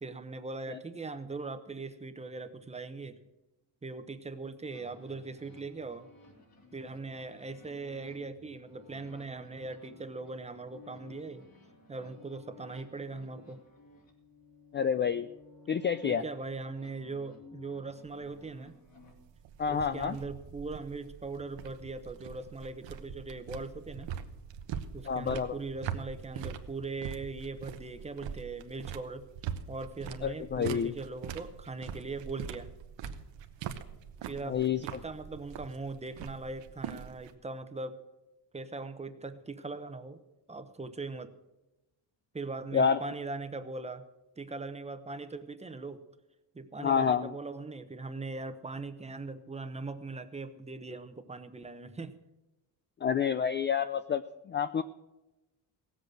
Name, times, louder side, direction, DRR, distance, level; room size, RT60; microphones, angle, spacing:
voice 1, 0.0-3.2 3.8-6.1 6.7-11.4 11.9-13.6 16.0-18.8 19.7-24.1 24.9-29.3 29.7-32.7 34.2-38.0 38.5-40.2 40.5-41.3 42.3-44.0 44.4-46.0 46.5-52.1, right 3 dB, 15° right, 10 dB, 0.8 m, -40 dB
sound 1, 4.7-19.1, left 3 dB, 55° left, 3.2 m, -56 dB
voice 2, 14.7-15.3 15.7-16.2 19.6-20.2 25.1-25.6 30.2-30.9 34.5-35.0 42.7-43.0 46.8-47.3 53.0-54.8, left 7 dB, 30° left, 12 dB, 0.3 m, -29 dB
sound 2, 18.1-37.3, right 8 dB, 80° right, 1.1 m, -43 dB
17.5 x 8.0 x 6.3 m, 1.0 s
cardioid pair, 145°, 43 cm